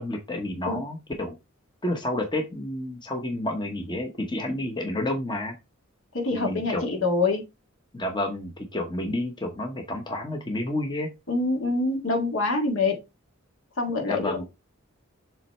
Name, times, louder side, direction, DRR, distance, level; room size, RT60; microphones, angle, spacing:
voice 1, 0.0-1.3 1.8-5.5 6.3-6.9 7.9-11.1 14.0-14.4, left 1 dB, 20° left, 0.9 m, -30 dB
voice 2, 6.1-7.4 11.3-13.0 13.8-14.4, left 3 dB, 65° left, 1.9 m, -25 dB
7.4 x 3.1 x 4.3 m
head